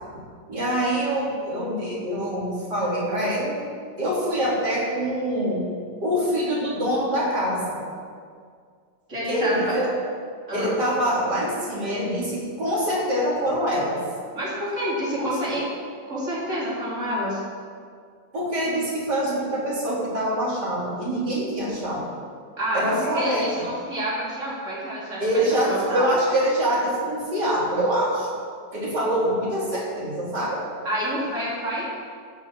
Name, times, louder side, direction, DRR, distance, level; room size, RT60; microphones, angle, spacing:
voice 1, 0.5-3.6 4.0-5.7 6.0-7.8 9.3-9.9 10.5-14.0 15.1-15.3 18.3-22.1 22.7-23.7 25.2-28.3 28.7-30.6, equal, 85° right, -6 dB, 4.0 m, -25 dB
voice 2, 9.1-9.8 10.5-10.8 14.3-15.6 16.1-17.4 22.6-25.3 25.6-26.1 30.8-31.8, equal, 45° right, -7 dB, 4.0 m, -28 dB
14.5 x 6.2 x 7.2 m, 2.1 s
omnidirectional pair, 1.8 m